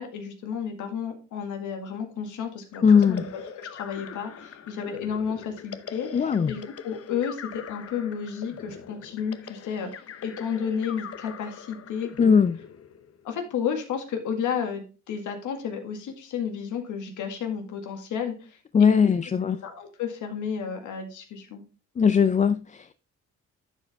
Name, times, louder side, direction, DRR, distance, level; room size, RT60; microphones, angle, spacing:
voice 1, 0.0-12.4 13.2-19.2 19.5-21.6, left 7 dB, 80° left, 1.9 m, -32 dB
sound 1, 2.7-13.3, left 7 dB, 50° left, 0.8 m, -42 dB
voice 2, 2.8-3.2 6.1-6.5 12.2-12.6 18.7-19.6 22.0-23.0, left 6 dB, 25° left, 0.4 m, -20 dB
11.0 x 4.9 x 3.4 m
cardioid pair, 90°, 30 cm